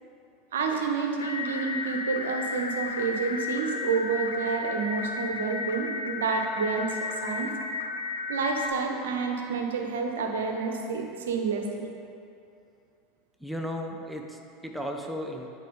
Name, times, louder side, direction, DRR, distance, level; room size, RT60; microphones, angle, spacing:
voice 1, 0.5-7.5 8.3-11.9, right 5 dB, 75° right, 3 dB, 0.9 m, -29 dB
sound 1, 1.2-8.7, left 4 dB, 85° left, 0.6 m, -33 dB
voice 2, 13.4-15.5, equal, ahead, 2 dB, 0.8 m, -35 dB
9.2 x 4.6 x 5.2 m, 2.7 s
figure-of-eight pair, 80°, 0 cm